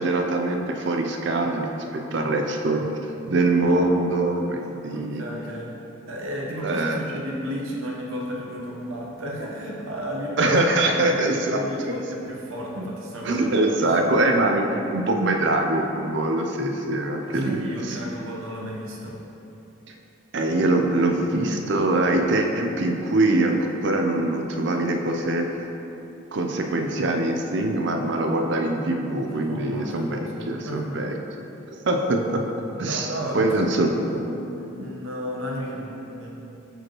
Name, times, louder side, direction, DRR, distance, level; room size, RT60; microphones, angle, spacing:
voice 1, 0.0-2.9 3.2-5.2 6.6-7.0 10.4-11.6 13.2-17.6 17.9-18.0 20.3-25.5 26.3-31.1 31.8-32.4 32.8-33.9, right 2 dB, 55° right, 3 dB, 0.5 m, -23 dB
voice 2, 4.9-5.7 6.1-13.7 14.2-14.3 17.2-19.2 29.2-31.2 32.7-33.5 33.9-36.3, equal, 70° right, -2 dB, 0.9 m, -33 dB
6.3 x 5.0 x 3.0 m, 3.0 s
head